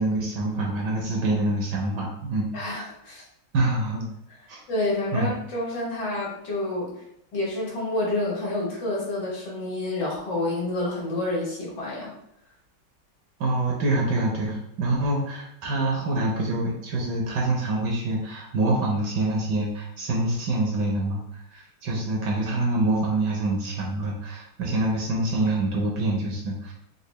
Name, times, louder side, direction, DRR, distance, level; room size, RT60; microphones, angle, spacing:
voice 1, 0.0-2.5 3.5-4.1 4.5-4.6 5.1-5.3 13.4-21.2 21.5-26.7, right 2 dB, 70° right, -2 dB, 1.1 m, -26 dB
voice 2, 2.5-3.2 4.7-6.9 7.3-12.1, left 2 dB, 65° left, -4 dB, 1.6 m, -28 dB
3.9 x 2.4 x 3.1 m, 0.77 s
omnidirectional pair, 2.2 m